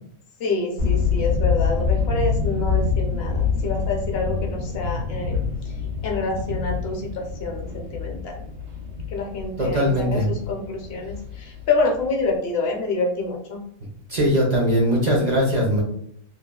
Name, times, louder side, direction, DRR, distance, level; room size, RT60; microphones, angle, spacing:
voice 1, 0.4-5.4 6.0-8.4 9.1-13.6, left 3 dB, 60° left, 1 dB, 0.8 m, -27 dB
sound 1, 0.8-12.3, left 5 dB, 85° right, 1.1 m, -26 dB
voice 2, 9.6-10.3 14.1-15.8, equal, 50° right, -3 dB, 0.5 m, -20 dB
2.8 x 2.2 x 2.2 m, 0.66 s
omnidirectional pair, 1.3 m